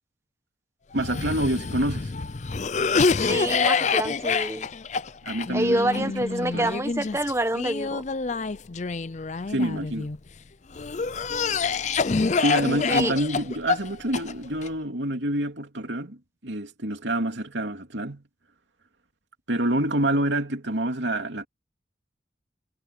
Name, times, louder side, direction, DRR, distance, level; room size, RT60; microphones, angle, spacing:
Cough, 0.9-10.2 10.7-14.7, left 4 dB, 40° left, 0.5 m, -27 dB
voice 1, 0.9-2.1 5.2-6.1 6.5-6.7 9.5-10.1 12.4-16.2 16.4-18.2 19.5-21.5, right 1 dB, 75° right, 2.9 m, -27 dB
voice 2, 2.9-4.7 5.5-8.0 12.9-13.1, right 1 dB, 15° right, 1.4 m, -27 dB
head